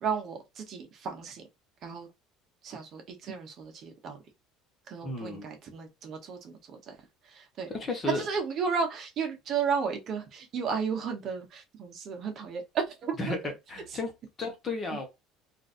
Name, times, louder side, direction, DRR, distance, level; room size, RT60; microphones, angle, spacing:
voice 1, 0.0-1.4 1.8-2.1 2.6-4.2 4.9-7.0 7.3-7.7 8.1-13.3, right 6 dB, 40° right, 0.9 m, -33 dB
voice 2, 5.0-5.5 7.7-8.2 13.2-13.4 13.7-14.1 14.4-15.1, left 3 dB, 25° left, 1.0 m, -33 dB
3.8 x 2.5 x 2.5 m
cardioid pair, 145°, 0 cm